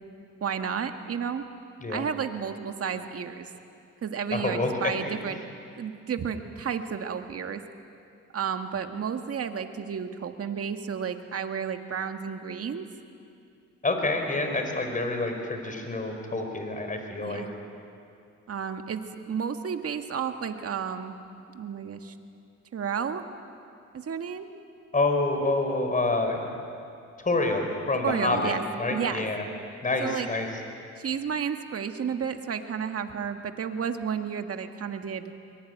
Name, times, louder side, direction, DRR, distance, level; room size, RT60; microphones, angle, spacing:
voice 1, 0.4-1.5 1.9-3.5 4.0-5.4 5.7-7.6 8.3-12.9 17.2-17.5 18.5-21.2 21.5-22.1 22.7-23.2 23.9-24.5 28.0-28.6 28.9-29.3 30.0-30.3 31.0-35.3, right 7 dB, 50° right, 7 dB, 1.8 m, -32 dB
voice 2, 4.3-4.7 13.8-17.5 24.9-26.5 27.2-29.4 29.8-30.5, left 2 dB, 25° left, 4 dB, 4.6 m, -27 dB
24.0 x 23.0 x 9.3 m, 2.5 s
cardioid pair, 90°, 30 cm